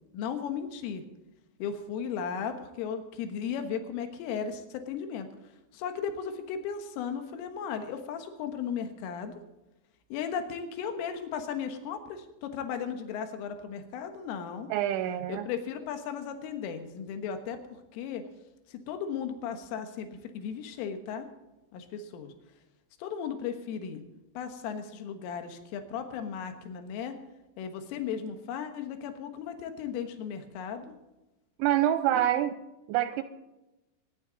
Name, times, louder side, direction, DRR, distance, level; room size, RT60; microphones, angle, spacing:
voice 1, 0.1-1.0 1.6-5.3 5.7-9.3 10.1-14.7 15.3-18.2 18.7-20.1 20.4-21.3 21.7-22.3 23.0-24.0 24.4-27.2 27.6-31.0, left 7 dB, 80° left, 7 dB, 3.9 m, -36 dB
voice 2, 14.7-15.5 31.6-32.6 32.9-33.2, right 12 dB, 85° right, 11 dB, 2.7 m, -26 dB
23.5 x 10.5 x 3.9 m, 0.99 s
omnidirectional pair, 5.7 m